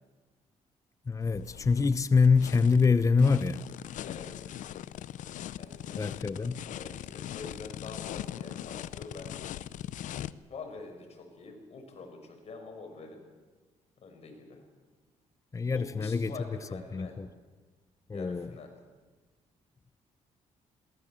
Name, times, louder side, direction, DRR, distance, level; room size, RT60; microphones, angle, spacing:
voice 1, 1.1-3.6 5.9-6.6 15.5-16.3 16.7-17.3 18.1-18.5, left 5 dB, 25° left, 0.8 m, -25 dB
sound 1, 1.2-10.3, left 11 dB, 75° left, 0.7 m, -41 dB
voice 2, 4.1-4.5 5.6-9.3 10.5-13.2 14.0-14.6 15.7-17.2 18.1-18.7, left 4 dB, 55° left, 6.2 m, -46 dB
22.0 x 18.0 x 7.6 m
cardioid pair, 85°, 13 cm